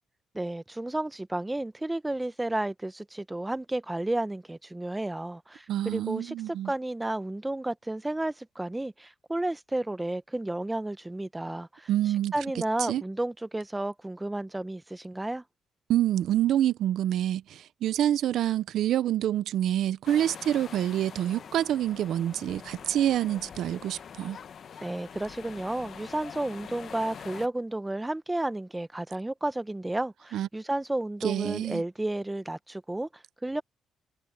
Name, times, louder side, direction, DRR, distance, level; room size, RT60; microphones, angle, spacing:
voice 1, 0.3-11.9 12.3-15.4 24.8-33.6, right 1 dB, 10° right, 0.8 m, -32 dB
voice 2, 5.7-6.7 11.9-12.3 12.9-13.0 15.9-24.4 30.3-30.5 31.2-31.8, right 11 dB, 75° right, 0.6 m, -27 dB
sound 1, 20.0-27.5, left 7 dB, 55° left, 1.0 m, -45 dB
cardioid pair, 90°, 0 cm